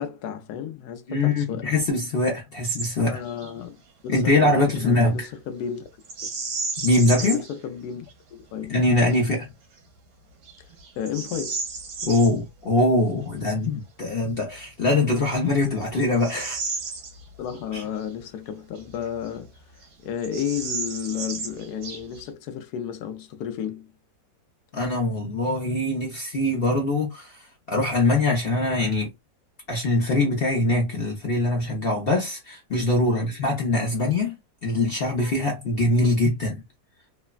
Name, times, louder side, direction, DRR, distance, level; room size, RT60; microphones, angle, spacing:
voice 1, 0.0-1.7 3.0-5.9 6.2-6.3 7.2-8.0 8.5-8.8 9.1-9.3 11.0-11.6 17.4-23.9 33.0-33.3, left 8 dB, 75° left, 1.0 m, -33 dB
voice 2, 1.1-3.2 4.1-5.3 6.8-7.4 8.7-9.5 12.1-16.6 17.7-17.8 24.7-29.1 29.7-34.4 34.6-36.6, left 2 dB, 55° left, 0.6 m, -23 dB
Bird vocalization bird call bird song, 2.6-2.9 3.2-3.5 6.0-7.5 8.1-8.2 8.8-9.2 9.8-9.9 10.4-12.3 14.4-14.5 15.2-17.6 18.0-18.1 18.8-19.6 19.8-19.9 20.2-22.3, right 4 dB, 70° right, 1.2 m, -33 dB
3.2 x 2.1 x 2.3 m
omnidirectional pair, 1.9 m